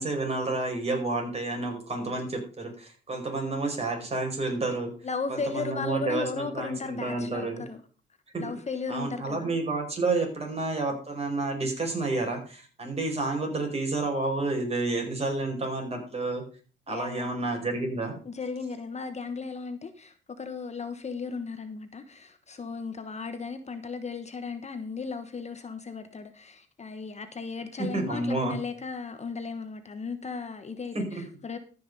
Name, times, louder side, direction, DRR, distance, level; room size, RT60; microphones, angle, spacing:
voice 1, 0.0-4.9 5.3-7.6 8.3-8.4 8.9-16.4 16.9-18.2 27.8-28.5 30.9-31.2, right 2 dB, 30° right, 5.0 m, -30 dB
voice 2, 5.0-7.8 8.4-9.5 16.9-17.3 18.2-31.6, left 4 dB, 35° left, 1.2 m, -36 dB
14.0 x 6.0 x 5.5 m
cardioid pair, 90°, 20 cm